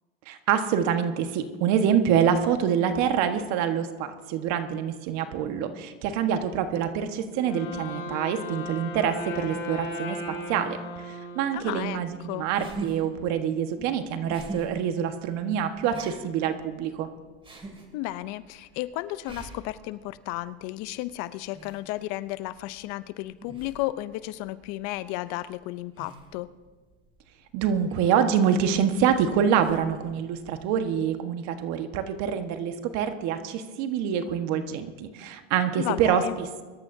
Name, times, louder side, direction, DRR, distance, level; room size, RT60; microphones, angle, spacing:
voice 1, 0.3-17.1 27.5-36.6, right 8 dB, 60° right, 7 dB, 1.5 m, -26 dB
Wind instrument woodwind instrument, 7.3-12.2, left 2 dB, 35° left, 4.1 m, -36 dB
voice 2, 11.5-12.5 17.9-26.5 35.7-36.4, left 16 dB, 55° left, 15 dB, 0.7 m, -33 dB
sound 1, 11.6-31.2, right 2 dB, 15° right, 2.6 m, -45 dB
23.5 x 13.0 x 2.7 m, 1.3 s
supercardioid pair, 105°, 32 cm